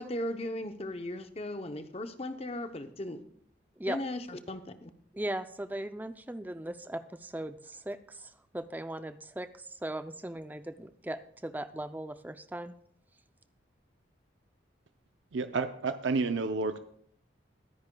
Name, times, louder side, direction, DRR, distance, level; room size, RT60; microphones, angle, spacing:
voice 1, 0.0-3.2 3.9-4.9, left 1 dB, 30° left, 9 dB, 0.7 m, -37 dB
voice 2, 5.1-12.7, right 1 dB, 10° right, 11 dB, 0.4 m, -38 dB
voice 3, 15.3-16.8, right 3 dB, 80° right, 9 dB, 0.6 m, -30 dB
22.5 x 10.0 x 2.3 m, 0.64 s
head